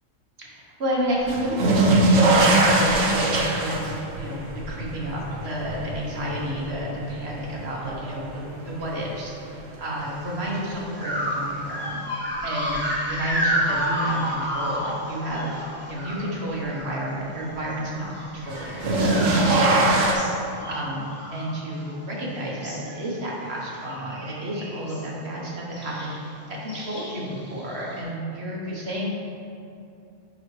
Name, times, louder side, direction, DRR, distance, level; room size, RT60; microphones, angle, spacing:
voice 1, 0.4-12.0 12.4-15.5 15.9-20.2 20.7-29.1, right 1 dB, 55° right, -4 dB, 1.3 m, -31 dB
sound 1, 1.3-8.3 8.7-9.4 11.0-11.1 12.7-12.8 18.5-20.1, right 2 dB, 85° right, 1.2 m, -21 dB
sound 2, 10.3-10.5 10.9-17.1 17.3-22.2 22.4-23.0 23.3-23.5 23.8-25.1 25.7-26.2 26.7-28.0, equal, 10° right, 1.2 m, -31 dB
10.5 x 4.0 x 3.2 m, 2.7 s
omnidirectional pair, 1.3 m